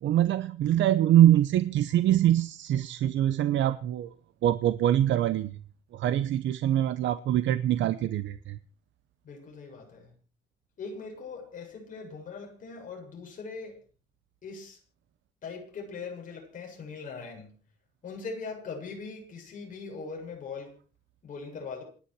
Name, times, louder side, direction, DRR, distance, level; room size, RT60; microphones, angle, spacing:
voice 1, 0.0-4.1 4.4-5.5 5.9-8.6, right 12 dB, 85° right, 13 dB, 0.8 m, -24 dB
voice 2, 9.2-10.1 10.8-13.8 14.4-14.8 15.4-17.5 18.0-20.7 21.2-21.8, left 4 dB, 45° left, 1 dB, 7.3 m, -40 dB
27.5 x 10.0 x 4.7 m, 0.40 s
cardioid pair, 170°, 19 cm